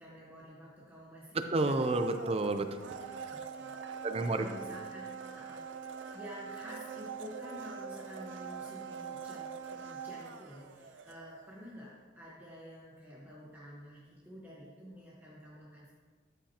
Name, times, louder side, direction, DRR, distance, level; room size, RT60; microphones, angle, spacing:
voice 1, 0.0-2.1 3.3-3.8 4.1-5.7 6.1-15.9, equal, 10° right, -6 dB, 1.1 m, -50 dB
voice 2, 1.5-3.4 4.0-4.4, right 2 dB, 30° right, 8 dB, 0.5 m, -31 dB
Domestic sounds home sounds, 1.6-11.6 11.9-12.0, right 6 dB, 85° right, 0.6 m, -44 dB
13.0 x 5.8 x 2.9 m, 1.5 s
head